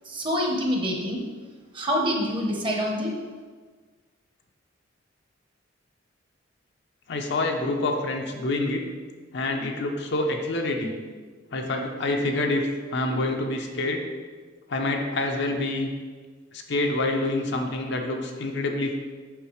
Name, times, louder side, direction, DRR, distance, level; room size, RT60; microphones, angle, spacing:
voice 1, 0.0-1.2 1.7-3.1, equal, 25° right, 0 dB, 0.9 m, -26 dB
voice 2, 7.1-8.8 9.3-11.0 11.5-14.0 14.7-15.9 16.5-18.9, left 2 dB, 65° left, 3 dB, 0.7 m, -27 dB
6.7 x 5.5 x 3.1 m, 1.5 s
head